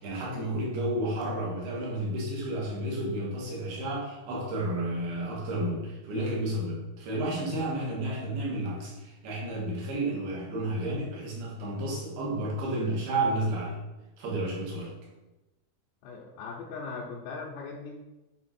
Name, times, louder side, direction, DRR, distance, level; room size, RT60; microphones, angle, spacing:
voice 1, 0.0-13.8 14.2-14.9, right 1 dB, 65° right, -4 dB, 3.2 m, -31 dB
voice 2, 16.0-18.0, left 4 dB, 80° left, -4 dB, 2.6 m, -39 dB
8.6 x 3.4 x 4.3 m, 1.0 s
omnidirectional pair, 5.0 m